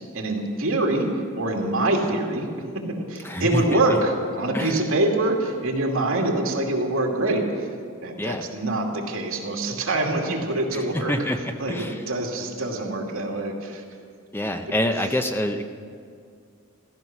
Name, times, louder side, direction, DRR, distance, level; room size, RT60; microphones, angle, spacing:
voice 1, 0.1-7.6 8.0-11.2 11.6-13.8, right 2 dB, 75° right, 0 dB, 2.5 m, -25 dB
voice 2, 3.2-3.8 4.5-4.8 8.2-8.4 10.7-12.0 14.3-15.6, left 1 dB, 10° left, 6 dB, 0.6 m, -26 dB
15.0 x 15.0 x 6.0 m, 2.2 s
head